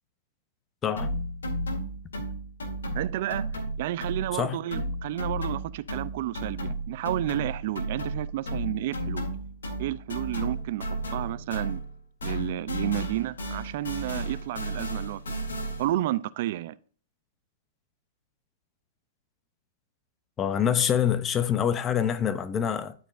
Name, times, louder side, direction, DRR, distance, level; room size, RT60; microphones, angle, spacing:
sound 1, 1.0-4.4 4.7-12.0 12.2-16.0, right 1 dB, 90° left, 2.0 m, -33 dB
voice 1, 3.0-3.5 3.8-9.3 9.8-10.9 11.1-11.8 12.2-15.2 15.8-16.7, right 14 dB, 55° right, 0.4 m, -31 dB
voice 2, 20.4-22.9, left 9 dB, 20° left, 0.6 m, -25 dB
12.0 x 4.5 x 2.5 m
hypercardioid pair, 135°, 0 cm